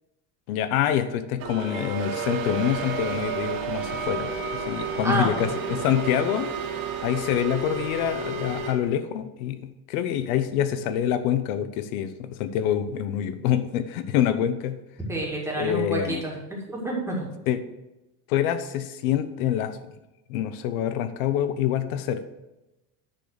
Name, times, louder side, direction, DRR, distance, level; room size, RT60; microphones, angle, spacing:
voice 1, 0.5-4.3 4.7-6.5 7.0-9.6 9.9-14.8 15.6-16.2 17.5-17.6 18.3-19.8 20.3-22.2, left 10 dB, 85° left, 11 dB, 0.8 m, -26 dB
sound 1, 1.4-8.7, right 4 dB, 60° right, 2.3 m, -31 dB
voice 2, 5.0-5.5 15.1-17.2, right 1 dB, 5° right, -2 dB, 1.9 m, -28 dB
10.0 x 4.0 x 6.5 m, 0.97 s
cardioid pair, 155°, 41 cm